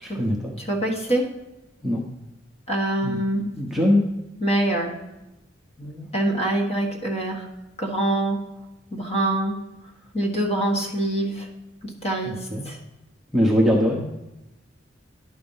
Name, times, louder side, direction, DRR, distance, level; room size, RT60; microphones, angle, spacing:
voice 1, 0.0-0.5 1.8-2.0 3.0-3.2 3.5-4.0 5.8-6.1 12.2-12.7 13.3-14.0, equal, ahead, -2 dB, 0.9 m, -22 dB
voice 2, 0.7-1.2 2.7-3.4 4.4-4.9 6.1-7.5 7.8-8.4 8.9-9.5 10.1-11.5 12.0-12.4 12.6-12.8, right 1 dB, 35° left, 1 dB, 1.6 m, -24 dB
11.0 x 4.1 x 5.6 m, 0.98 s
head